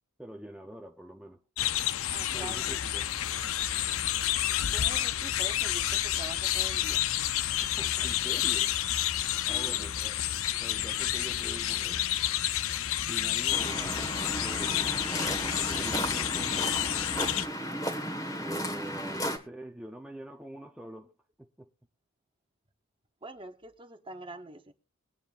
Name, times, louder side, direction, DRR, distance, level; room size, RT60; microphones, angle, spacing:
voice 1, 0.2-1.4 2.3-3.1 4.5-4.6 7.6-8.7 9.5-10.1 10.6-12.1 13.1-17.0 18.4-21.1 21.4-21.7, right 1 dB, 5° right, 0.7 m, -44 dB
sound 1, 1.6-17.5, left 12 dB, 65° left, 0.5 m, -30 dB
voice 2, 2.1-2.8 4.7-7.1 9.5-9.9 23.2-24.7, right 2 dB, 25° right, 1.0 m, -44 dB
Waves surf, 13.5-19.4, equal, 15° left, 1.6 m, -34 dB
21.5 x 9.5 x 2.5 m
head